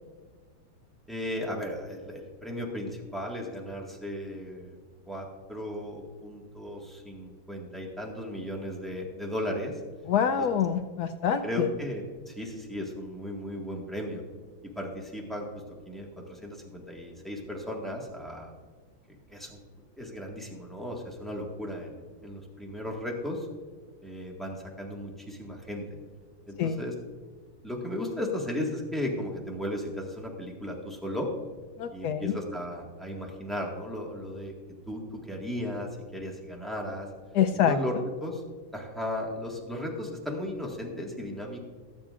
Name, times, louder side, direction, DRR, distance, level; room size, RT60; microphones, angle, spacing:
voice 1, 1.1-4.8 5.1-9.8 10.4-10.5 11.4-14.2 14.6-18.5 19.3-19.6 20.0-23.5 24.0-26.0 26.5-26.9 27.6-31.3 31.9-34.5 34.9-37.1 37.6-37.9 38.2-38.4 38.7-41.6, left 1 dB, ahead, -1 dB, 1.4 m, -35 dB
voice 2, 10.1-11.4 26.6-26.8 31.8-32.4 37.3-37.8, left 8 dB, 75° left, 7 dB, 0.9 m, -26 dB
21.0 x 7.6 x 2.5 m, 1.4 s
omnidirectional pair, 2.1 m